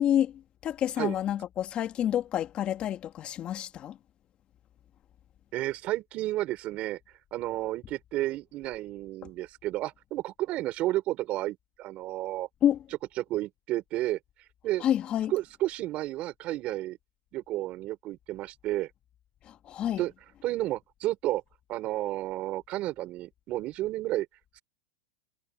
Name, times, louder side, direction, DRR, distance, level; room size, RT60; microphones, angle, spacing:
voice 1, 0.0-4.0 12.6-12.8 14.8-15.3 19.5-20.0, left 10 dB, 30° left, 2.6 m, -28 dB
voice 2, 5.5-7.0 7.3-12.5 13.2-14.2 14.6-14.8 15.3-17.0 17.3-18.9 20.0-20.1 20.4-21.4 21.7-24.3, right 16 dB, 35° right, 4.9 m, -31 dB
supercardioid pair, 140°, 4 cm